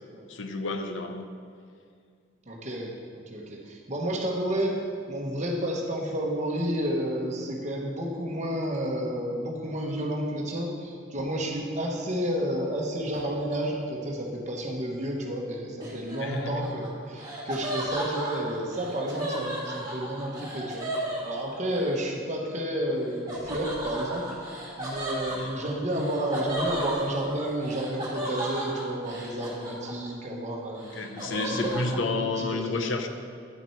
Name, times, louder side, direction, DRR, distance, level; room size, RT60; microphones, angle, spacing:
voice 1, 0.3-1.3 16.2-16.7 25.3-25.5 30.9-33.1, left 3 dB, 70° left, 6 dB, 0.6 m, -30 dB
voice 2, 2.5-4.8 5.1-32.9, right 1 dB, 35° right, 0 dB, 1.1 m, -31 dB
Laughter, 15.8-21.8 23.3-30.2 30.6-32.0, right 1 dB, 20° right, 1.8 m, -35 dB
9.9 x 5.9 x 4.5 m, 2.2 s
head